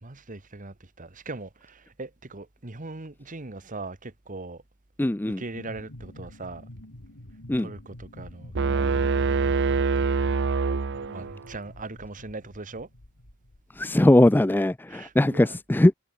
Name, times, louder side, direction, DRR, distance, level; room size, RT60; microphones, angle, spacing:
voice 1, 0.0-4.6 5.3-6.7 7.6-9.7 9.9-10.4 11.1-12.9 14.9-15.6, right 2 dB, 35° right, 1.5 m, -40 dB
voice 2, 5.0-5.4 7.5-7.7 13.8-15.9, left 1 dB, 10° left, 0.4 m, -20 dB
sound 1, 5.5-14.1, left 1 dB, 75° left, 3.3 m, -47 dB
sound 2, 8.5-11.5, right 4 dB, 55° right, 0.6 m, -25 dB
head